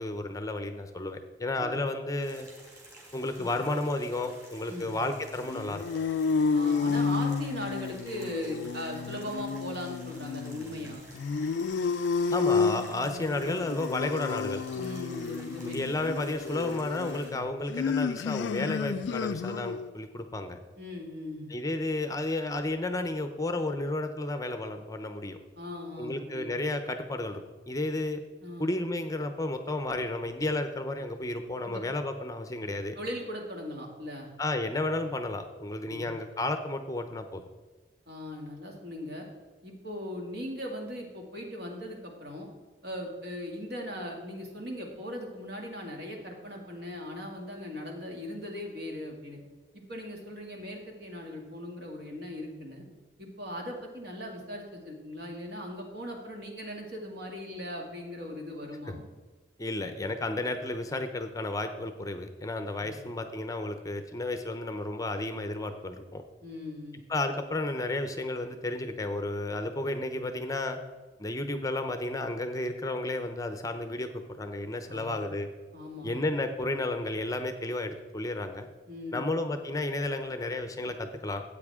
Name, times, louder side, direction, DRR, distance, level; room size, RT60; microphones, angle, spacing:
voice 1, 0.0-2.5 3.1-5.8 12.3-14.6 15.6-20.6 21.5-25.4 26.0-28.2 28.6-33.0 34.4-37.4 58.9-59.0 59.6-66.2 67.1-70.8 71.2-75.5 76.0-78.7 79.1-81.4, left 2 dB, 20° left, 8 dB, 0.6 m, -32 dB
sound 1, 2.2-17.3, right 1 dB, 20° right, 3.4 m, -52 dB
sound 2, 5.4-19.9, left 5 dB, 75° left, 0.3 m, -31 dB
voice 2, 6.5-11.0 14.7-15.8 20.8-21.5 25.6-26.5 28.4-28.7 31.6-31.8 33.0-34.3 35.9-36.1 38.1-39.2 39.6-42.5 42.8-49.4 49.7-52.8 53.2-59.1 62.8-63.0 66.4-67.1 74.9-75.2 75.7-76.2 78.9-79.4, left 1 dB, 60° right, 1 dB, 2.4 m, -39 dB
13.0 x 8.5 x 3.6 m, 1.4 s
head